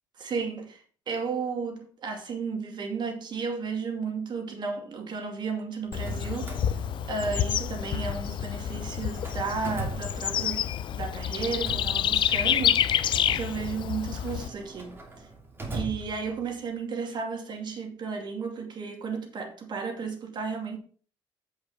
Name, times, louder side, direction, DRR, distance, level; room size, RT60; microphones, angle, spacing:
voice 1, 0.2-6.8 7.1-10.7 10.9-13.1 13.3-15.3 15.7-20.8, right 5 dB, 55° right, 2.4 m, -33 dB
Bird / Insect, 5.9-14.5, left 10 dB, 60° left, 0.5 m, -28 dB
Drawer open or close, 5.9-8.1 8.4-10.7 11.4-16.6, right 2 dB, 25° right, 2.7 m, -41 dB
8.0 x 5.4 x 5.4 m
cardioid pair, 85°, 9 cm